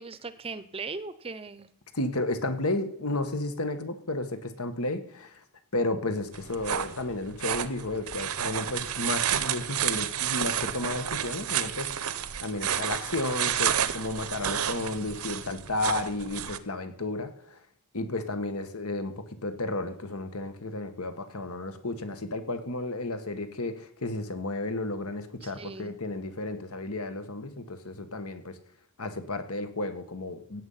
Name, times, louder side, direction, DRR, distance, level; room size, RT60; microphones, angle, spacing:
voice 1, 0.0-1.7 25.4-26.0, right 4 dB, 25° right, 14 dB, 0.7 m, -39 dB
voice 2, 1.9-5.4 5.7-12.1 12.4-17.6 17.9-28.6 29.0-30.6, left 2 dB, 75° left, 9 dB, 1.6 m, -33 dB
sound 1, 6.3-16.6, right 9 dB, 80° right, 0.8 m, -30 dB
17.0 x 8.1 x 5.7 m, 0.74 s
head